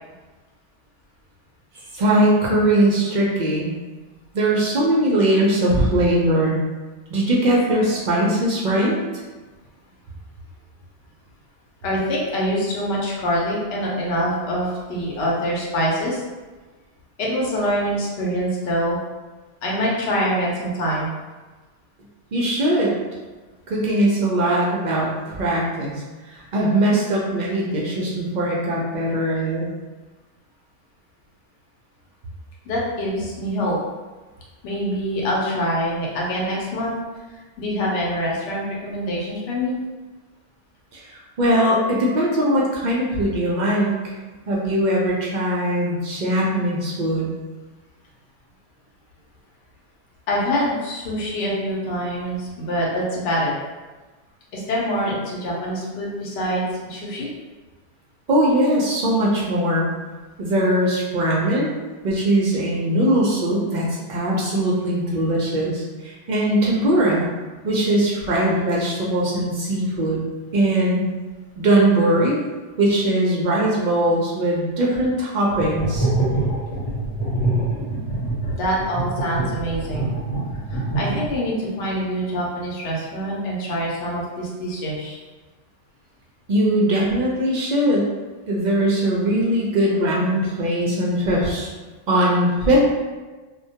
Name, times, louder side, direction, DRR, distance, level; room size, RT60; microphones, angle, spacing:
voice 1, 1.9-3.7 4.3-6.6 7.1-9.0 22.3-22.9 23.7-25.9 26.2-29.7 40.9-44.0 44.5-47.3 58.3-59.9 60.4-61.7 62.0-67.3 67.6-70.2 70.5-71.0 71.6-72.4 72.8-76.1 86.5-88.1 88.5-91.7 92.1-92.8, right 1 dB, 60° right, -4 dB, 0.5 m, -20 dB
voice 2, 11.8-16.2 17.2-19.0 19.6-21.2 32.7-33.8 34.6-36.9 37.6-39.8 50.3-53.5 54.5-57.3 78.5-80.1 80.7-85.2, equal, 65° left, -4 dB, 0.8 m, -25 dB
sound 1, 75.5-81.6, right 2 dB, 90° left, 1.1 m, -24 dB
2.2 x 2.1 x 2.7 m, 1.3 s
omnidirectional pair, 1.2 m